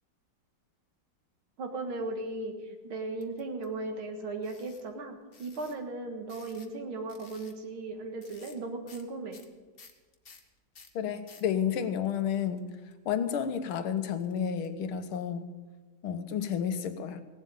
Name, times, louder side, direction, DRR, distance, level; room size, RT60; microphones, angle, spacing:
voice 1, 1.6-9.4, right 2 dB, 80° right, 5 dB, 2.4 m, -37 dB
sound 1, 3.2-3.7 4.4-4.8 5.3-5.7 6.3-6.8 7.1-7.6 8.2-8.6 8.9-9.0 9.3-11.5 12.0-14.7, left 5 dB, 35° left, 1.1 m, -55 dB
voice 2, 11.0-12.7 13.1-15.5 16.0-17.2, left 8 dB, 90° left, 9 dB, 1.8 m, -31 dB
17.0 x 7.6 x 8.9 m, 1.3 s
omnidirectional pair, 2.2 m